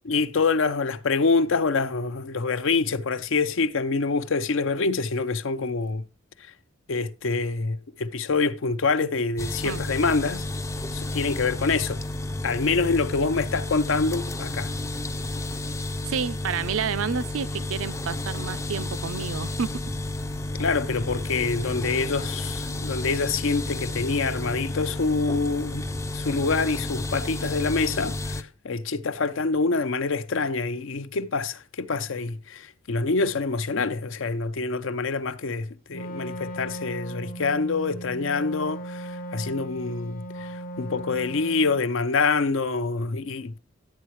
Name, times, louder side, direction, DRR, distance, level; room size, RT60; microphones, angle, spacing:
voice 1, 0.1-6.0 6.4-6.5 6.9-10.4 10.9-12.0 12.4-14.7 20.6-25.9 26.1-43.6, left 4 dB, 65° left, 0.6 m, -26 dB
sound 1, 9.4-28.4, left 2 dB, 15° left, 0.4 m, -31 dB
voice 2, 16.0-19.8, right 6 dB, 75° right, 0.5 m, -30 dB
Wind instrument woodwind instrument, 35.9-41.9, right 1 dB, 45° left, 0.8 m, -37 dB
11.5 x 8.4 x 3.1 m
head